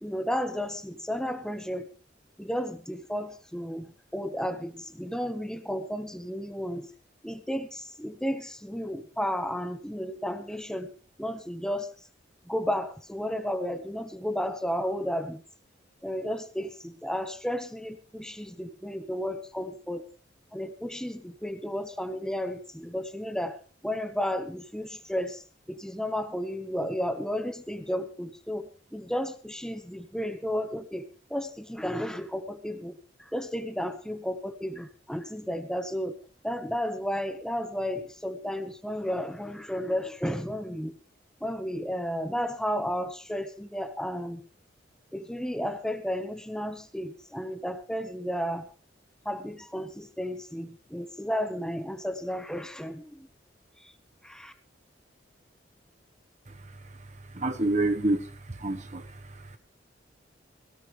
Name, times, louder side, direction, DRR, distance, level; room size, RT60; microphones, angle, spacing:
voice 1, 0.0-1.9 2.4-6.9 7.2-10.9 11.2-11.9 12.5-15.4 16.0-20.1 20.5-25.4 25.7-36.2 36.4-41.0 41.4-44.5 45.1-48.7 49.2-53.3 53.8-53.9 54.2-54.5, equal, 5° left, 8 dB, 1.2 m, -33 dB
voice 2, 57.3-58.3 58.6-59.1, right 2 dB, 40° right, 9 dB, 1.2 m, -27 dB
17.5 x 17.5 x 3.3 m, 0.35 s
head